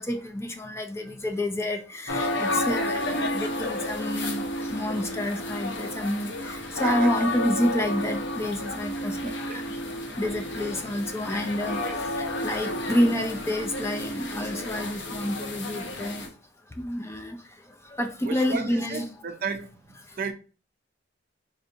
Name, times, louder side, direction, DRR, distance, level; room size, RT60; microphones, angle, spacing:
voice 1, 0.0-9.3 10.2-11.8 12.4-16.3 16.8-17.4 17.9-19.0, left 1 dB, 15° left, 0.4 m, -29 dB
sound 1, 2.1-16.3, left 1 dB, 65° left, 0.7 m, -31 dB
voice 2, 2.1-2.6 6.8-7.3 9.2-9.6 11.5-12.0 18.2-20.3, right 5 dB, 50° right, 0.4 m, -36 dB
4.2 x 2.6 x 2.7 m
head